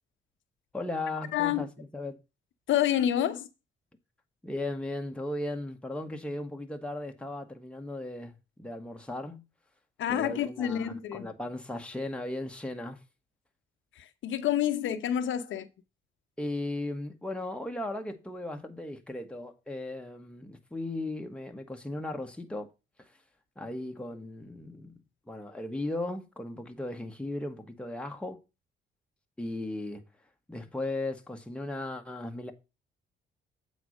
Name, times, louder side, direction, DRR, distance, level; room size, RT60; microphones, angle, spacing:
voice 1, 0.7-2.2 4.4-9.4 10.1-13.0 16.4-22.7 23.6-25.0 25.3-28.4 29.4-30.0 30.5-32.5, left 2 dB, 5° left, 1.3 m, -36 dB
voice 2, 1.3-1.6 2.7-3.5 10.0-11.3 14.0-15.7, left 10 dB, 75° left, 0.9 m, -28 dB
8.1 x 4.1 x 6.3 m
cardioid pair, 90°, 20 cm